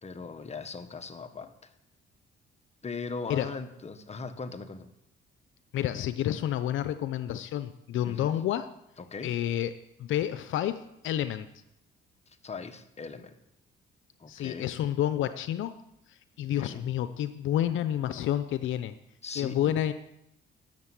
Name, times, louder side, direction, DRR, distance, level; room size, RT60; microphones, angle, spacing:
voice 1, 0.0-1.7 2.8-4.9 8.0-8.4 9.0-9.3 12.3-13.4 14.2-14.7 16.6-16.8 19.2-19.7, left 4 dB, 35° left, 8 dB, 1.4 m, -39 dB
voice 2, 5.7-8.7 9.2-9.7 10.0-11.5 14.3-15.7 16.1-18.9 19.4-19.9, left 11 dB, 80° left, 12 dB, 0.7 m, -29 dB
13.5 x 7.2 x 9.8 m, 0.83 s
cardioid pair, 90°, 20 cm